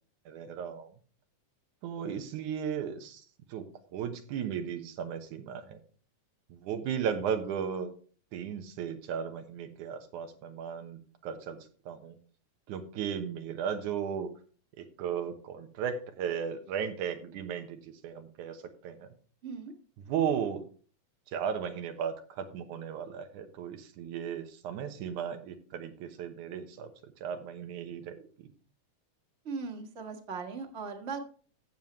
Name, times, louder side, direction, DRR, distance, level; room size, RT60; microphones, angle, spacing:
voice 1, 0.3-0.9 1.8-3.2 3.5-5.8 6.5-7.9 8.3-11.6 11.9-12.2 12.7-14.3 14.8-19.1 20.1-20.6 21.3-26.9 27.2-28.5, right 8 dB, 90° right, 7 dB, 2.6 m, -35 dB
voice 2, 19.4-19.7 29.4-31.2, right 5 dB, 35° right, 3 dB, 1.2 m, -38 dB
14.5 x 7.3 x 3.1 m, 0.41 s
omnidirectional pair, 3.4 m